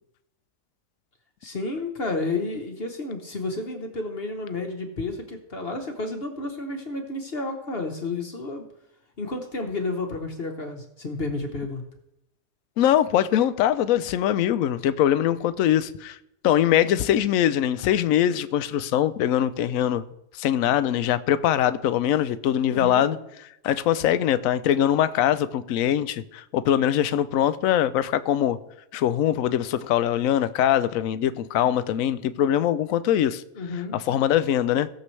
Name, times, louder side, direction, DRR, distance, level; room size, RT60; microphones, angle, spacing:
voice 1, 1.4-8.7 9.2-11.8 22.7-23.1 33.5-34.0, left 3 dB, 40° left, 1.2 m, -31 dB
voice 2, 12.8-16.2 16.4-20.1 20.3-23.2 23.6-28.6 28.9-33.4 33.9-34.9, left 11 dB, 70° left, 0.9 m, -22 dB
17.0 x 7.0 x 3.2 m
omnidirectional pair, 1.7 m